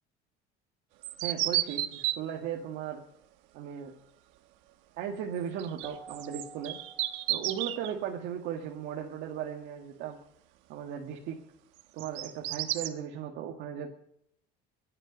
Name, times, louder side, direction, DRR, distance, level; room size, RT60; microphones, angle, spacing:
sound 1, 1.0-2.2 5.6-7.9 11.8-12.9, right 16 dB, 90° right, 1.2 m, -32 dB
voice 1, 1.2-3.0 3.5-3.9 5.0-6.8 7.3-10.2 10.7-11.4 11.9-13.9, right 8 dB, 70° right, 0 dB, 1.8 m, -37 dB
Keyboard (musical), 5.8-8.1, right 4 dB, ahead, 2.9 m, -51 dB
23.0 x 9.0 x 5.2 m, 0.70 s
cardioid pair, 150°, 19 cm